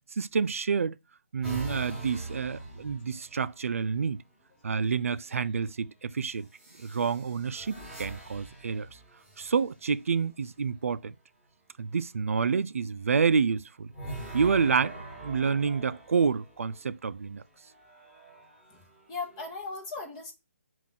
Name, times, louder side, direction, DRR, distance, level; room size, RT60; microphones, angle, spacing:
voice 1, 0.1-1.0 1.3-4.2 4.6-6.5 6.8-8.9 9.4-11.1 11.8-13.9 14.3-15.0 15.2-17.4, right 5 dB, 80° right, 0.4 m, -28 dB
sound 1, 1.4-3.7 5.0-5.4 6.5-10.0 13.9-16.9 17.6-19.5, right 2 dB, 5° right, 1.4 m, -43 dB
voice 2, 19.1-20.3, left 4 dB, 20° left, 0.9 m, -37 dB
5.8 x 2.5 x 3.6 m
hypercardioid pair, 160°, 7 cm